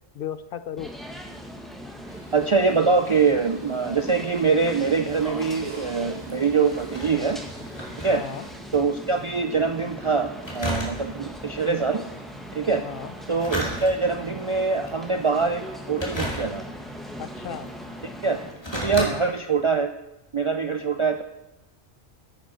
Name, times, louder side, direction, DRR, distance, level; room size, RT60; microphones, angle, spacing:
voice 1, 0.1-0.9 8.1-8.4 12.8-13.1 17.2-17.7 19.0-19.3, left 9 dB, 65° left, 12 dB, 0.7 m, -35 dB
sound 1, 0.8-18.5, equal, ahead, 1.5 m, -39 dB
sound 2, 2.1-8.5, equal, 80° right, 4.1 m, -48 dB
voice 2, 2.3-7.4 8.0-8.2 8.7-12.0 12.5-12.8 13.3-16.6 18.0-18.4 18.7-19.9 20.3-21.2, right 5 dB, 50° right, 7 dB, 0.3 m, -24 dB
sound 3, 6.3-8.9 9.2-9.3 10.4-11.4 13.2-14.3 14.8-15.2 15.9-16.9 17.7-17.8 18.3-19.1 19.6-19.7, equal, 25° left, 2.3 m, -33 dB
10.0 x 8.8 x 4.4 m, 0.94 s
omnidirectional pair, 1.1 m